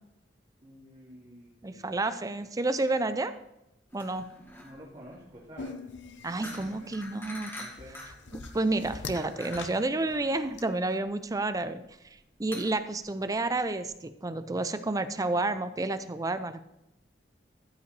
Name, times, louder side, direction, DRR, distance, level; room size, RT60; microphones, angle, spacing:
voice 1, 0.6-1.9 4.4-5.8 6.4-6.9 7.6-8.0, equal, 35° right, -7 dB, 2.4 m, -50 dB
voice 2, 1.6-3.3 3.9-4.3 6.2-7.5 8.3-11.8 12.4-16.6, right 2 dB, 20° right, 11 dB, 0.5 m, -30 dB
sound 1, 3.9-13.9, left 1 dB, 15° left, 1.8 m, -47 dB
sound 2, 5.6-10.6, left 4 dB, 85° left, 0.7 m, -43 dB
14.0 x 5.7 x 4.1 m, 0.89 s
head